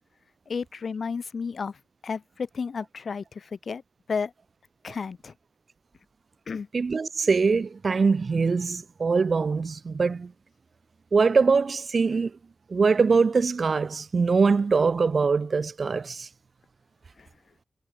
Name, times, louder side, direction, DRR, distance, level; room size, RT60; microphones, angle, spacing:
voice 1, 0.5-1.7 2.0-3.8 4.1-4.3 4.8-5.3 6.5-6.7, left 5 dB, 70° left, 2.4 m, -32 dB
voice 2, 6.7-10.3 11.1-12.3 12.7-16.3, right 4 dB, 55° right, 3.2 m, -23 dB
wide cardioid pair, 115°, 0 cm